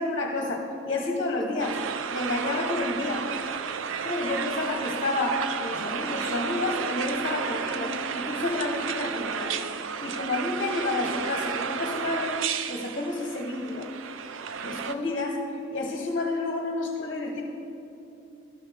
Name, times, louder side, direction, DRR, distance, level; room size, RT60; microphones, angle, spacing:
voice 1, 0.0-1.8 2.1-3.3 4.0-9.6 10.0-12.4 12.7-13.9 14.6-15.4 15.7-17.4, left 2 dB, 40° left, 1 dB, 1.1 m, -30 dB
sound 1, 1.6-14.9, right 6 dB, 70° right, 0.5 m, -32 dB
12.5 x 12.5 x 3.5 m, 3.0 s
head